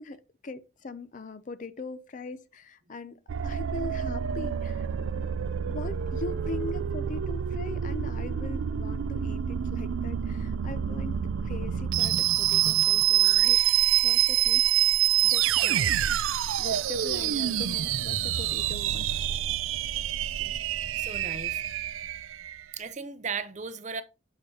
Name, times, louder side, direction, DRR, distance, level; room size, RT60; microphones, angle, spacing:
voice 1, 0.0-3.2 3.4-5.3 5.6-14.6 15.2-16.0 16.6-19.3, left 3 dB, 40° left, 0.5 m, -41 dB
sound 1, 3.3-22.6, right 11 dB, 90° right, 0.4 m, -27 dB
voice 2, 21.0-21.6 22.7-24.0, right 5 dB, 35° right, 0.6 m, -36 dB
6.5 x 6.5 x 2.8 m
head